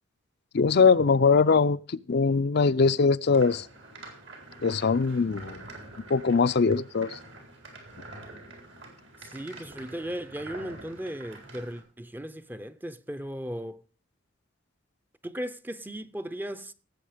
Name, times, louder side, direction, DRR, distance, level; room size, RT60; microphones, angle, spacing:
voice 1, 0.5-3.7 4.6-5.6 6.1-7.2, left 5 dB, 55° left, 0.5 m, -22 dB
sound 1, 3.3-11.8, right 2 dB, 70° right, 4.3 m, -46 dB
voice 2, 9.2-13.8 15.2-16.7, equal, 10° right, 0.6 m, -37 dB
17.5 x 7.7 x 5.0 m
head